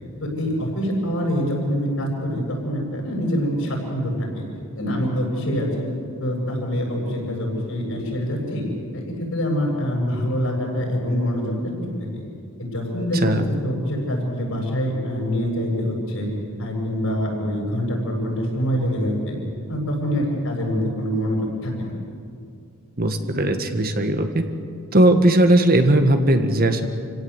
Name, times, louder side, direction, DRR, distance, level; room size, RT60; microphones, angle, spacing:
voice 1, 0.2-4.4 4.7-5.9 6.2-8.7 8.9-11.7 12.0-12.3 12.6-16.3 16.6-19.4 19.7-21.9, equal, 70° left, -1 dB, 7.9 m, -25 dB
voice 2, 23.0-24.4 24.9-26.9, right 1 dB, 45° right, 6 dB, 1.6 m, -18 dB
28.0 x 17.0 x 8.2 m, 2.4 s
head